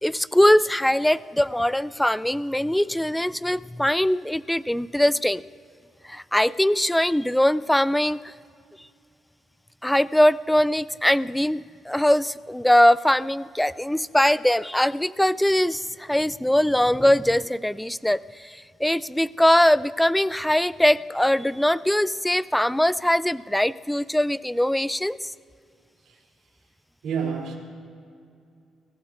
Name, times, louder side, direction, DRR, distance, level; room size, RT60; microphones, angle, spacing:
voice 1, 0.0-5.4 6.0-8.3 9.8-25.3, left 1 dB, 5° left, 17 dB, 0.3 m, -21 dB
voice 2, 27.0-27.6, right 6 dB, 80° right, -1 dB, 3.2 m, -27 dB
26.5 x 16.0 x 2.6 m, 2.4 s
cardioid pair, 90°, 0 cm